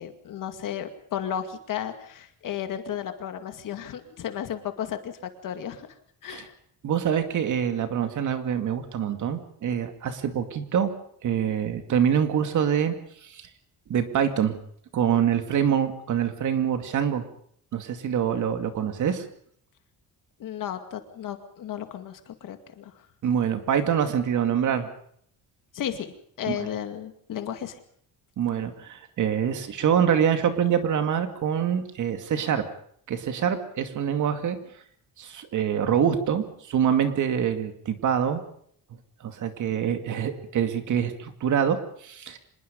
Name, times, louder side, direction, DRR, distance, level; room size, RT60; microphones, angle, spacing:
voice 1, 0.0-5.1 5.4-5.9 6.2-6.5 20.4-22.9 25.7-26.1 26.4-27.8, left 9 dB, 60° left, 8 dB, 2.3 m, -33 dB
voice 2, 6.8-10.9 11.2-12.9 13.2-13.5 13.9-14.6 14.9-17.3 17.7-19.2 23.2-24.9 26.5-26.7 28.4-32.6 33.1-34.6 35.2-38.4 39.2-42.4, right 8 dB, 55° right, 7 dB, 2.4 m, -25 dB
25.5 x 20.5 x 5.4 m, 0.63 s
cardioid pair, 175°, 36 cm